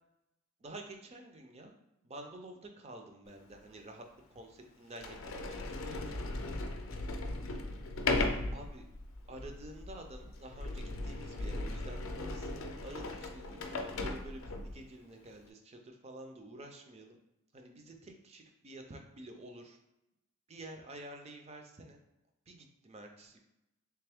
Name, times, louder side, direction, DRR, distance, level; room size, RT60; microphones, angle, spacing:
voice 1, 0.6-1.7 2.0-4.0 4.3-6.2 8.5-8.8 9.3-17.2 17.5-19.8 20.5-22.0 22.5-23.4, right 1 dB, 30° right, 4 dB, 0.5 m, -49 dB
Sliding door, 3.5-3.6 4.4-4.5 4.9-14.8, left 2 dB, 65° left, 0.5 m, -37 dB
3.4 x 3.0 x 3.4 m, 0.90 s
head